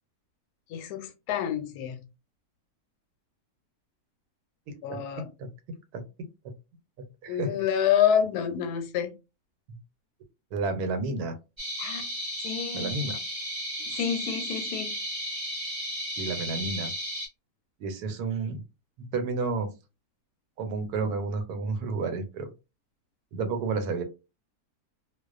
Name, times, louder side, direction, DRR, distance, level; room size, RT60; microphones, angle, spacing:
voice 1, 0.7-2.0 4.8-5.3 7.3-9.1 11.8-12.1 12.4-13.0 13.8-15.0, left 9 dB, 85° left, 1.1 m, -28 dB
voice 2, 4.7-5.5 5.9-6.0 7.0-7.6 10.5-11.3 12.7-13.2 16.2-16.9 17.8-18.6 19.0-19.7 20.6-22.5 23.3-24.0, right 3 dB, 90° right, 1.1 m, -31 dB
sound 1, 11.6-17.3, equal, 30° right, 0.6 m, -34 dB
2.3 x 2.2 x 2.3 m
omnidirectional pair, 1.6 m